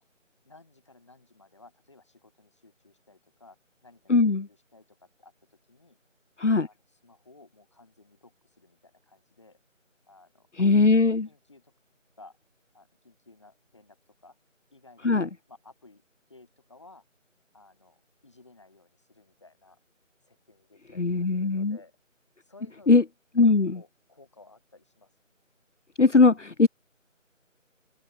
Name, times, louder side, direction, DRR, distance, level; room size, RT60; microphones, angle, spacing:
voice 1, 0.4-3.6 3.8-6.0 6.6-9.6 10.1-10.7 11.0-11.7 12.2-12.4 12.7-14.0 14.2-14.4 14.7-15.1 15.5-16.0 16.3-17.0 17.5-19.8 20.3-21.1 21.3-22.0 22.4-22.9 23.7-25.1, left 3 dB, 20° left, 6.1 m, -56 dB
voice 2, 4.1-4.5 6.4-6.7 10.6-11.3 15.0-15.3 21.0-21.8 22.9-23.0 23.4-23.8 26.0-26.7, left 3 dB, 65° left, 1.0 m, -20 dB
open air
figure-of-eight pair, 175°, 39 cm